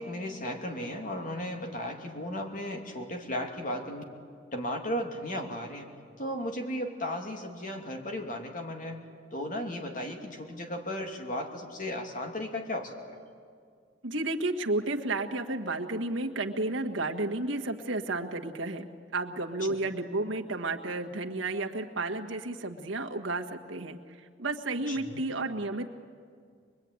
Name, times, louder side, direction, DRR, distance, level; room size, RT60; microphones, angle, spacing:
voice 1, 0.0-4.0 4.5-13.2 24.9-25.2, left 1 dB, 45° left, 3 dB, 2.7 m, -35 dB
voice 2, 14.0-18.8 19.1-24.0 24.4-26.0, right 2 dB, 85° right, 3 dB, 1.6 m, -32 dB
24.0 x 22.0 x 9.6 m, 2.1 s
head